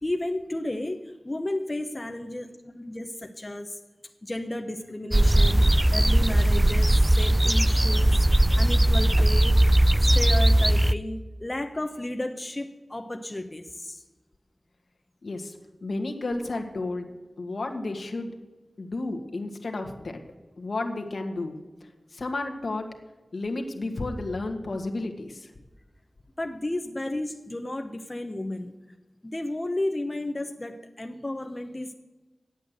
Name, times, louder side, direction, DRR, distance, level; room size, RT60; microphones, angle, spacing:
voice 1, 0.0-3.8 4.2-9.6 10.0-14.0 26.4-28.9 29.2-31.9, left 1 dB, 30° left, 5 dB, 0.9 m, -33 dB
sound 1, 5.1-10.9, right 1 dB, 20° right, 0.4 m, -19 dB
voice 2, 15.2-17.1 17.4-18.3 18.8-20.2 20.6-21.6 22.1-22.9 23.3-25.5, left 2 dB, 70° left, 4 dB, 1.6 m, -32 dB
11.0 x 8.4 x 7.9 m, 1.2 s
cardioid pair, 40°, 0 cm